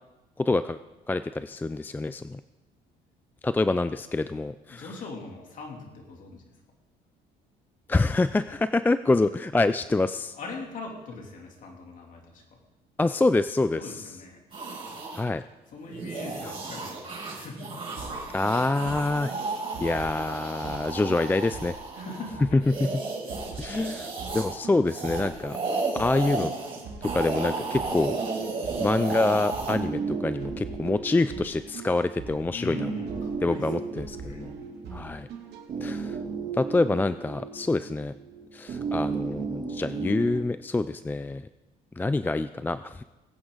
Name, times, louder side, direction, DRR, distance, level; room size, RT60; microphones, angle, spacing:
voice 1, 0.4-0.8 1.1-2.4 3.4-4.8 7.9-10.3 13.0-13.9 15.1-15.4 18.3-19.3 19.8-21.8 22.5-22.9 23.6-24.1 24.3-25.6 25.9-26.5 27.0-28.2 28.8-32.9 33.4-34.5 34.9-35.3 35.8-36.2 36.5-38.1 38.5-41.4 42.0-43.0, left 2 dB, 10° left, 12 dB, 0.3 m, -26 dB
voice 2, 4.7-6.6 10.3-12.6 13.8-14.4 15.7-17.8 22.0-22.6 32.5-35.0, left 3 dB, 50° left, 1 dB, 3.0 m, -41 dB
sound 1, 14.5-15.2 15.9-24.6 24.8-29.8, right 3 dB, 30° right, 5.4 m, -33 dB
sound 2, 18.0-35.6, right 4 dB, 70° right, 3.0 m, -43 dB
sound 3, 28.1-40.4, right 5 dB, 50° right, 2.8 m, -35 dB
21.5 x 8.7 x 3.9 m, 1.1 s
cardioid pair, 110°, 17 cm